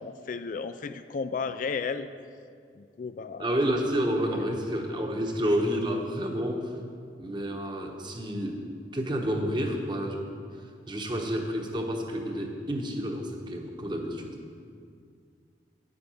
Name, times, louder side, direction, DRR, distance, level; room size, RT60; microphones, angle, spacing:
voice 1, 0.0-2.1 2.7-3.5 4.3-4.4, left 5 dB, 50° left, 11 dB, 0.3 m, -33 dB
voice 2, 3.4-6.8 7.2-8.6 8.9-10.3 10.9-14.4, equal, 25° right, 2 dB, 1.0 m, -29 dB
9.6 x 7.7 x 5.6 m, 2.2 s
head